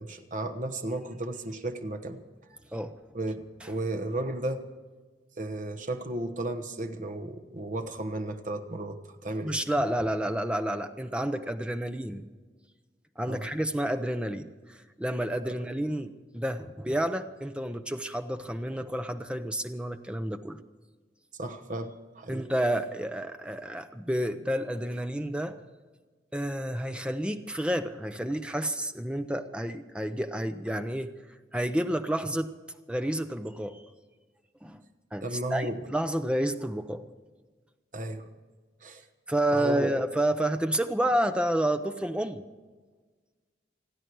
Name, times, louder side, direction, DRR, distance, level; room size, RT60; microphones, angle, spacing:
voice 1, 0.0-2.2 3.1-4.7 5.4-9.6 13.3-13.5 21.4-22.5 35.2-35.8 37.9-38.3 38.8-39.0 39.5-39.9, right 1 dB, 45° right, 6 dB, 1.1 m, -34 dB
voice 2, 9.4-12.3 13.2-20.6 22.3-25.6 26.3-31.1 31.5-32.5 32.9-33.8 34.6-34.8 35.1-37.0 39.3-42.5, right 1 dB, 5° right, 8 dB, 0.7 m, -30 dB
29.0 x 9.9 x 4.7 m, 1.4 s
head